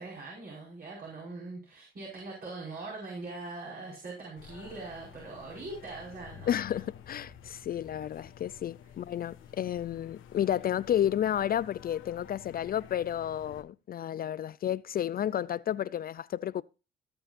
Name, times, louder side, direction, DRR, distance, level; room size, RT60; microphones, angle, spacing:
voice 1, 0.0-6.5, right 3 dB, 50° right, 5.2 m, -42 dB
sound 1, 4.4-13.6, left 9 dB, 80° left, 1.4 m, -51 dB
voice 2, 6.5-16.6, left 10 dB, 50° left, 0.4 m, -31 dB
17.0 x 6.8 x 2.5 m
cardioid pair, 90°, 20 cm